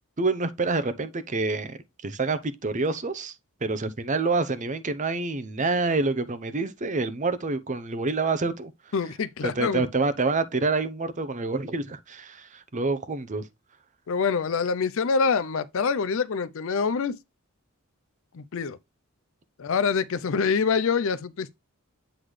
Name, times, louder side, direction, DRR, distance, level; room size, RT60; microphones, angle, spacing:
voice 1, 0.2-3.3 3.6-8.7 9.4-13.5, right 3 dB, 35° right, 0.7 m, -27 dB
voice 2, 8.9-9.8 14.1-17.2 18.3-18.8 19.6-21.5, left 5 dB, 65° left, 0.5 m, -25 dB
7.9 x 3.9 x 3.1 m
head